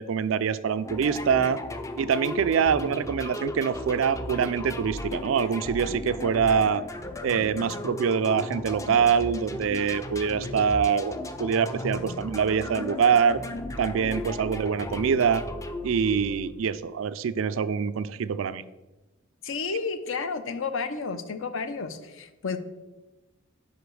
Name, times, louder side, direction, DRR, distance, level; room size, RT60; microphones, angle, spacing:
voice 1, 0.0-1.6 2.0-6.8 7.2-13.4 13.8-15.4 15.8-18.6, right 6 dB, 75° right, 15 dB, 0.4 m, -25 dB
sound 1, 0.8-16.8, left 1 dB, 15° left, 0.4 m, -36 dB
voice 2, 19.4-22.6, left 4 dB, 70° left, 10 dB, 0.6 m, -31 dB
5.1 x 5.0 x 6.2 m, 1.1 s
head